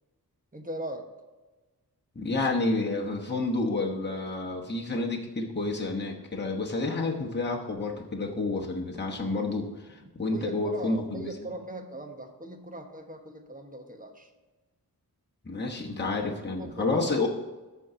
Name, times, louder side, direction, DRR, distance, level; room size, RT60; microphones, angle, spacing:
voice 1, 0.5-1.1 10.3-14.3 15.6-15.8 16.3-17.0, right 2 dB, 20° right, 4 dB, 1.2 m, -39 dB
voice 2, 2.1-11.3 15.4-17.3, left 3 dB, 25° left, -1 dB, 1.1 m, -30 dB
13.5 x 4.7 x 3.8 m, 1.2 s
wide cardioid pair, 90°, 39 cm